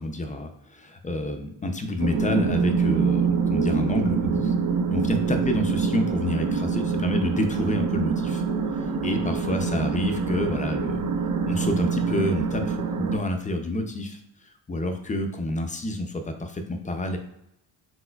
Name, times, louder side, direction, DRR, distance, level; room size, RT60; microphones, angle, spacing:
voice 1, 0.0-4.5 4.9-8.4 9.0-11.0 11.4-17.2, left 1 dB, 20° left, 5 dB, 0.3 m, -28 dB
sound 1, 2.0-13.2, right 5 dB, 50° right, 0.5 m, -25 dB
4.3 x 4.1 x 2.2 m, 0.80 s
cardioid pair, 140°, 42 cm